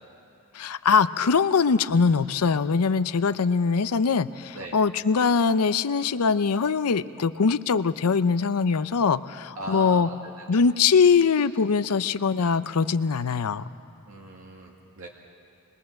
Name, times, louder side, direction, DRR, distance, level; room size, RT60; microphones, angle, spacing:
voice 1, 0.5-10.1 10.5-13.7, left 5 dB, 85° left, 13 dB, 0.6 m, -22 dB
voice 2, 9.6-10.2 10.5-10.6 14.1-15.1, right 2 dB, 70° right, -1 dB, 2.0 m, -38 dB
26.0 x 21.5 x 7.7 m, 2.6 s
head